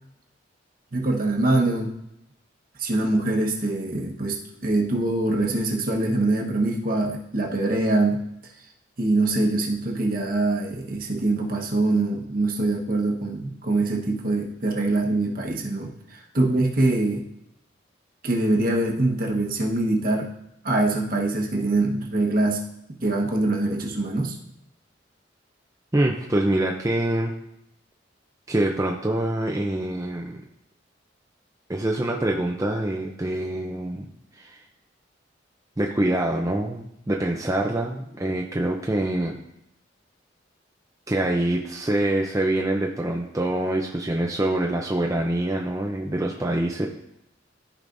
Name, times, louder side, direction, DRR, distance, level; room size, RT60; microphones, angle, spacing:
voice 1, 0.9-1.9 2.8-8.2 9.0-17.2 18.2-20.3 20.6-22.6 23.0-24.4, right 2 dB, 50° right, 1 dB, 1.2 m, -24 dB
voice 2, 25.9-27.3 28.5-30.4 31.7-34.1 34.3-34.6 35.8-39.4 41.1-46.9, right 1 dB, 15° right, 0 dB, 0.5 m, -25 dB
14.0 x 5.0 x 2.6 m, 0.79 s
head